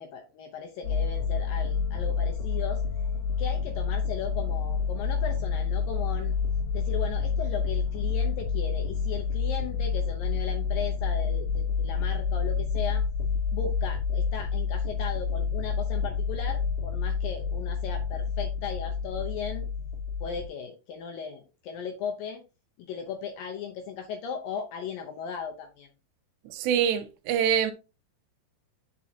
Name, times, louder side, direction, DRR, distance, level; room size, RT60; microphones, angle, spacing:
voice 1, 0.0-2.8 3.4-6.3 6.7-13.0 13.5-19.7 20.2-22.4 22.8-25.9, left 6 dB, 75° left, 2.1 m, -37 dB
sound 1, 0.8-20.5, left 5 dB, 60° left, 2.2 m, -28 dB
voice 2, 26.5-27.7, right 9 dB, 80° right, 2.9 m, -25 dB
8.5 x 6.1 x 2.8 m
omnidirectional pair, 5.0 m